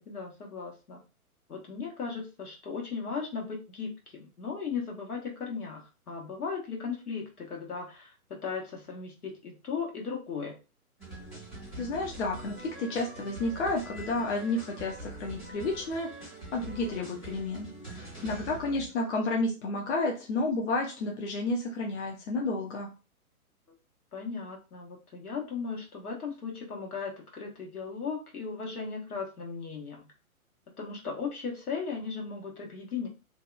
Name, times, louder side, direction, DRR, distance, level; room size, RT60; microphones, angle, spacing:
voice 1, 0.1-1.0 1.5-5.8 6.1-10.6 18.3-18.6 24.1-30.1 30.8-33.1, left 5 dB, 75° left, 0 dB, 1.2 m, -37 dB
sound 1, 11.0-18.9, right 2 dB, 10° left, 0.4 m, -44 dB
voice 2, 11.8-22.9, left 2 dB, 50° left, 0 dB, 0.7 m, -31 dB
2.7 x 2.2 x 2.4 m, 0.32 s
figure-of-eight pair, 130°, 45 cm